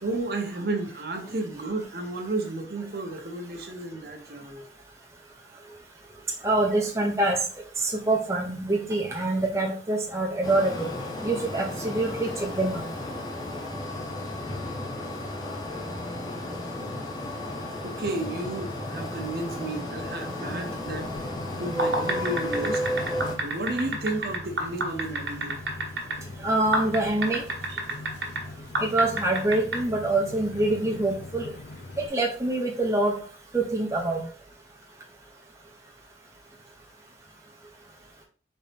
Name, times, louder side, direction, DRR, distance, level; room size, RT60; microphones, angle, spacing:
voice 1, 0.0-4.7 17.3-21.1 21.6-25.6 26.2-26.3, right 2 dB, 60° right, 4 dB, 0.9 m, -33 dB
voice 2, 6.4-7.4 7.8-10.9 11.2-12.9 26.4-27.4 28.8-31.5 32.1-33.2 33.5-34.2, right 2 dB, 15° right, 0 dB, 0.7 m, -25 dB
sound 1, 10.4-23.4, left 1 dB, 25° left, 0.7 m, -33 dB
sound 2, 20.9-32.1, left 2 dB, 80° left, 0.6 m, -42 dB
sound 3, 21.8-26.1 26.7-28.4 28.7-29.8, right 2 dB, 75° right, 1.3 m, -27 dB
4.2 x 3.5 x 3.4 m, 0.41 s
head